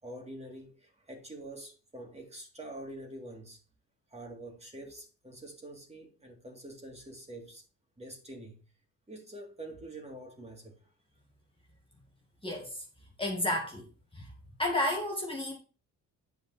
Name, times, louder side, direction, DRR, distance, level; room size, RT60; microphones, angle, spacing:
voice 1, 0.0-3.6 4.1-7.6 8.0-8.6 9.1-10.8, right 1 dB, 20° right, 2.9 m, -46 dB
voice 2, 12.4-12.8 13.2-13.9 14.1-14.3 14.6-15.5, left 1 dB, 15° left, 1.9 m, -31 dB
9.4 x 5.1 x 4.2 m
cardioid pair, 100°, 34 cm